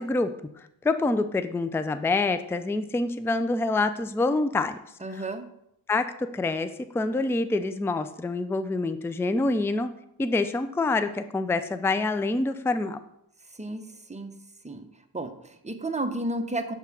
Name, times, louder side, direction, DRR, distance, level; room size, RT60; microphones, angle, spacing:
voice 1, 0.0-4.8 5.9-9.9 10.2-13.0, left 3 dB, 5° left, 10 dB, 0.4 m, -26 dB
voice 2, 5.0-5.5 13.5-14.3 14.6-14.8 15.1-16.7, right 2 dB, 15° right, 7 dB, 0.8 m, -32 dB
6.7 x 3.6 x 5.9 m, 0.76 s
cardioid pair, 45°, 49 cm